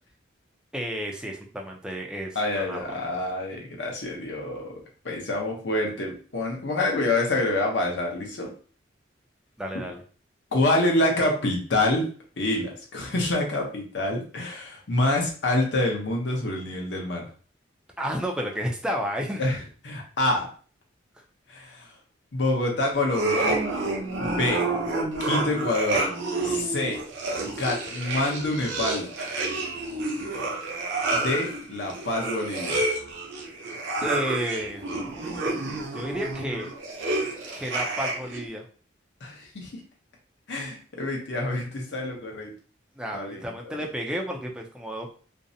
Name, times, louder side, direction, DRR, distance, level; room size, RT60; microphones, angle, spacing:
voice 1, 0.7-3.0 9.6-10.0 18.0-19.4 34.0-34.8 35.9-36.7 37.6-38.6 43.0-45.1, equal, 5° right, 1 dB, 0.3 m, -31 dB
voice 2, 2.3-8.5 10.5-12.1 12.4-17.3 19.4-20.5 21.5-21.9 22.3-23.6 24.2-24.6 25.2-26.0 26.4-27.0 27.6-29.1 31.1-32.8 39.2-39.8 40.5-42.5 43.1-43.8, left 2 dB, 60° left, 0 dB, 0.7 m, -27 dB
sound 1, 23.0-38.4, right 2 dB, 70° right, 0.6 m, -29 dB
2.5 x 2.0 x 2.6 m, 0.41 s
head